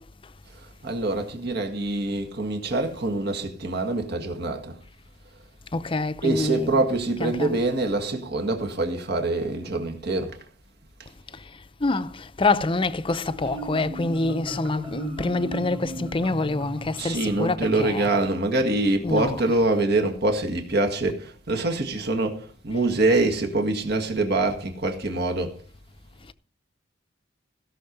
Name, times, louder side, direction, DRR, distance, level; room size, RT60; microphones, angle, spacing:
voice 1, 0.8-4.8 6.2-10.4 17.0-25.5, right 2 dB, 55° right, 1.9 m, -25 dB
voice 2, 5.7-6.9 7.2-7.6 11.3-11.4 11.8-18.1 19.0-19.6, left 3 dB, 25° left, 0.6 m, -26 dB
Marimba xylophone, 13.1-18.6, right 1 dB, 30° right, 2.2 m, -36 dB
16.5 x 6.4 x 5.4 m
head